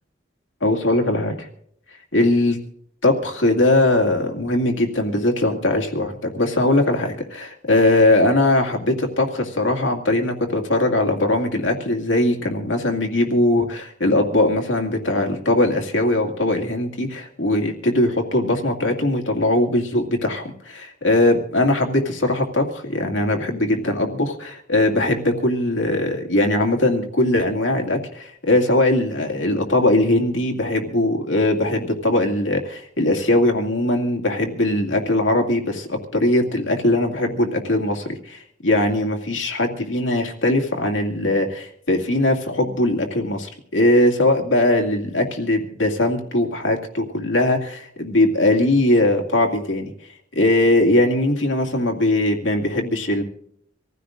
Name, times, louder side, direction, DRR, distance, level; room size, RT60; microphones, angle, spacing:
voice 1, 0.6-1.5 2.1-2.6 3.0-49.9 50.4-53.2, left 1 dB, 80° left, 3 dB, 2.3 m, -20 dB
25.5 x 15.0 x 2.6 m, 0.68 s
head